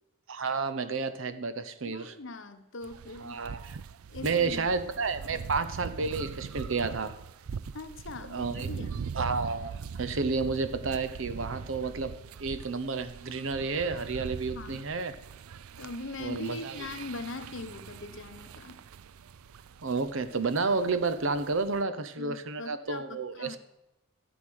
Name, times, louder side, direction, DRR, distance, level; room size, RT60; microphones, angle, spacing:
voice 1, 0.3-2.2 3.2-3.8 4.2-7.2 8.3-8.7 9.1-12.1 12.4-15.1 16.2-16.8 19.8-23.6, right 4 dB, 60° right, 12 dB, 0.8 m, -31 dB
voice 2, 1.8-3.4 4.1-4.7 5.3-5.4 7.7-9.0 14.5-14.8 15.8-18.8 22.2-23.6, left 3 dB, 60° left, 9 dB, 0.9 m, -41 dB
sound 1, 2.8-21.8, right 6 dB, 80° right, 0.4 m, -42 dB
13.5 x 8.2 x 6.4 m, 0.94 s
head